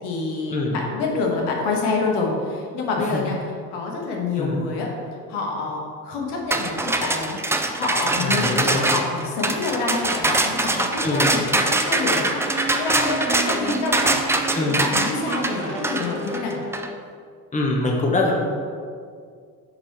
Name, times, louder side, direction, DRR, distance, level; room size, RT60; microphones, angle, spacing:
voice 1, 0.0-3.4 3.7-4.9 5.3-14.1 14.6-16.5, left 3 dB, 65° left, -1 dB, 1.5 m, -27 dB
sound 1, 6.5-16.9, right 2 dB, 5° right, 0.4 m, -23 dB
voice 2, 8.2-8.9 11.0-11.3 14.5-14.8 17.5-18.4, left 2 dB, 15° left, -1 dB, 1.1 m, -23 dB
sound 2, 12.3-16.9, right 2 dB, 25° right, 1.7 m, -32 dB
6.1 x 4.8 x 4.3 m, 2.2 s
hypercardioid pair, 55°, 45 cm